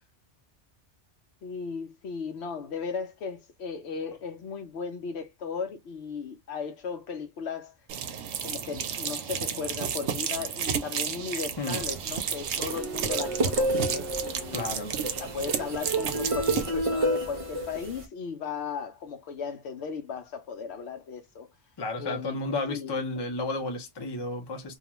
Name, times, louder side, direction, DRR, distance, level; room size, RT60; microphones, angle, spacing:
voice 1, 1.4-7.7 8.4-14.7 15.2-21.5 22.0-22.4 22.7-23.0, left 5 dB, 70° left, 0.8 m, -36 dB
sound 1, 7.9-16.7, right 7 dB, 70° right, 0.8 m, -32 dB
sound 2, 11.9-18.1, right 1 dB, 40° right, 0.5 m, -30 dB
voice 2, 14.5-15.0 21.8-24.8, left 2 dB, 30° left, 0.5 m, -32 dB
2.4 x 2.2 x 2.9 m
omnidirectional pair, 1.2 m